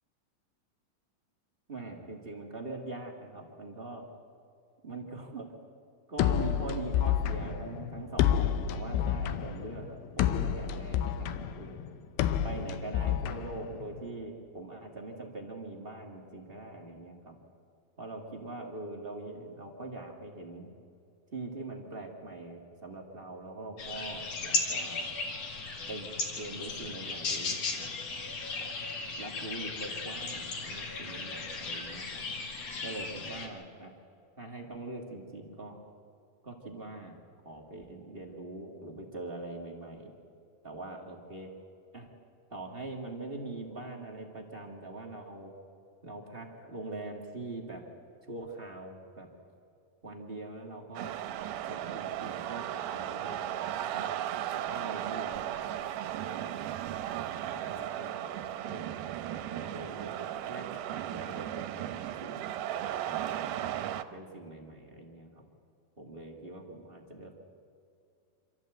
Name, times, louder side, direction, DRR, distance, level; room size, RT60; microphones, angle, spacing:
voice 1, 1.7-4.0 4.8-5.5 6.1-11.8 12.4-17.4 18.0-20.7 21.3-25.1 25.9-27.9 29.2-32.3 32.8-33.9 34.4-35.8 36.4-37.2 37.4-40.1 40.6-41.5 41.9-42.1 42.5-45.5 46.0-47.8 48.2-49.3 50.0-51.2 51.6-54.1 54.5-56.6 57.4-62.4 63.1-65.5 66.0-67.3, right 2 dB, 35° right, 0 dB, 0.9 m, -43 dB
sound 1, 6.2-14.1, left 10 dB, 80° left, 2.6 m, -30 dB
sound 2, 23.8-33.5, left 3 dB, 50° left, 2.7 m, -36 dB
sound 3, 51.0-64.0, right 11 dB, 90° right, 2.6 m, -36 dB
26.0 x 13.5 x 7.9 m, 2.5 s
omnidirectional pair, 4.2 m